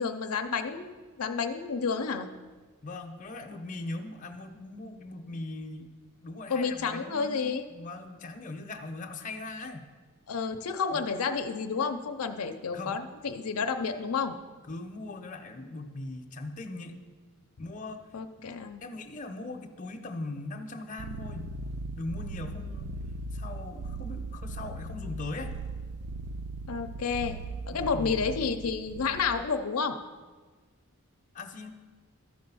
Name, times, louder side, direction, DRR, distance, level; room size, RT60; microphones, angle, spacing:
voice 1, 0.0-2.3 6.5-7.7 10.3-14.4 18.1-18.8 26.7-27.4 27.7-30.0, left 5 dB, 85° left, 6 dB, 0.6 m, -30 dB
voice 2, 2.8-5.9 6.2-9.9 10.9-11.1 12.7-13.0 14.6-17.0 17.6-18.1 18.8-21.5 21.9-22.9 23.3-25.5 27.7-28.1 31.3-31.7, left 2 dB, 35° left, 3 dB, 0.7 m, -40 dB
sound 1, 21.0-29.5, right 2 dB, 75° right, 0.4 m, -38 dB
13.5 x 5.1 x 5.5 m, 1.4 s
head